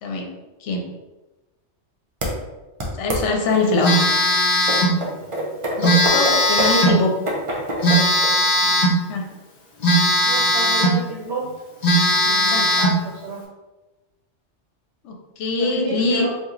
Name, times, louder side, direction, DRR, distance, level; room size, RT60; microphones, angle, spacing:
sound 1, 2.2-2.3 2.8-3.2 3.9-4.0 4.7-8.3, right 1 dB, 35° right, 0.5 m, -25 dB
voice 1, 3.0-3.9 5.8-7.1 9.1-9.3 12.5-12.7 15.0-16.3, left 3 dB, 75° left, 2 dB, 0.9 m, -22 dB
Telephone, 3.8-5.0 5.8-7.0 7.8-9.0 9.8-11.0 11.4-11.5 11.8-13.0, equal, 45° left, 0.6 m, -18 dB
voice 2, 10.2-11.4 12.1-13.4 15.6-16.3, right 3 dB, 65° right, -2 dB, 0.8 m, -30 dB
2.9 x 2.2 x 3.7 m, 1.1 s
omnidirectional pair, 1.2 m